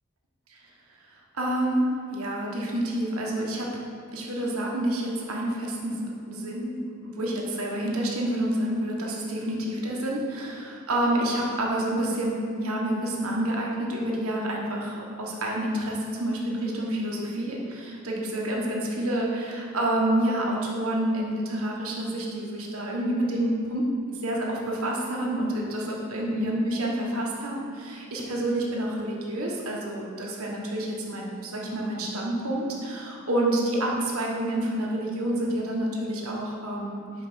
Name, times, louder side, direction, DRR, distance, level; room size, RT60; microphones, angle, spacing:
voice 1, 1.3-3.8 4.1-6.0 6.3-37.0, right 1 dB, 85° right, -2 dB, 1.3 m, -28 dB
5.5 x 4.8 x 6.2 m, 2.4 s
head